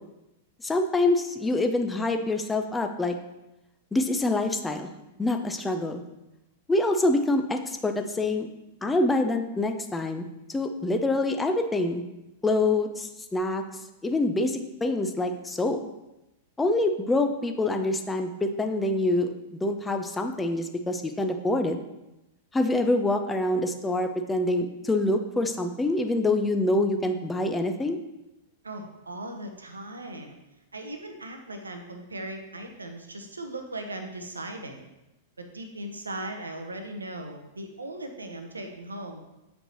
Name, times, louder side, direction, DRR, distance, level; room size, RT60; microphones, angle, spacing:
voice 1, 0.6-3.2 3.9-4.9 5.2-6.0 6.7-8.5 8.8-12.0 12.4-13.6 14.0-15.8 16.6-21.8 22.5-28.0, left 2 dB, 10° left, 5 dB, 0.5 m, -26 dB
voice 2, 28.6-30.4 30.7-34.9 35.4-39.2, right 1 dB, 75° right, 5 dB, 0.8 m, -38 dB
7.6 x 5.2 x 2.9 m, 0.95 s
figure-of-eight pair, 95°, 0 cm